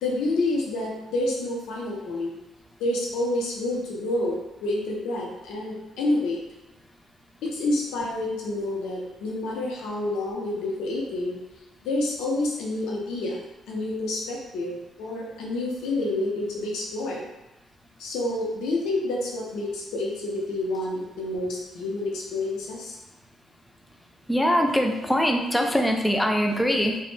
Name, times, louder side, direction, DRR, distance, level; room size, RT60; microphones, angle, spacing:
voice 1, 0.0-2.3 2.8-6.4 7.4-11.4 11.8-13.4 13.7-17.2 18.0-23.0, left 2 dB, 90° left, -2 dB, 0.5 m, -28 dB
voice 2, 24.3-27.0, equal, 10° left, 3 dB, 0.3 m, -22 dB
2.0 x 2.0 x 3.1 m, 1.0 s
cardioid pair, 90°, 0 cm